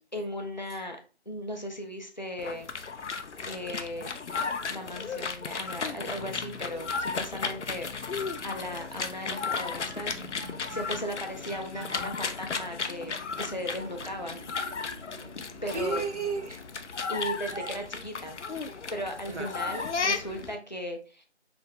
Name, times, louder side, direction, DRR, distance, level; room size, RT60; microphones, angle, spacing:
voice 1, 0.1-1.0 1.3-2.7 3.5-4.1 4.7-10.2 10.7-14.4 15.6-16.1 17.1-18.4 18.9-21.3, equal, 40° left, 0.6 m, -37 dB
sound 1, 2.4-20.6, left 5 dB, 90° left, 0.6 m, -35 dB
voice 2, 9.7-11.0 11.5-12.1 13.0-13.2 15.7-16.6 17.5-17.8 19.3-19.5, right 4 dB, 85° right, 0.9 m, -36 dB
sound 2, 12.6-17.5, equal, 45° right, 0.4 m, -51 dB
3.4 x 2.9 x 3.6 m
figure-of-eight pair, 175°, 34 cm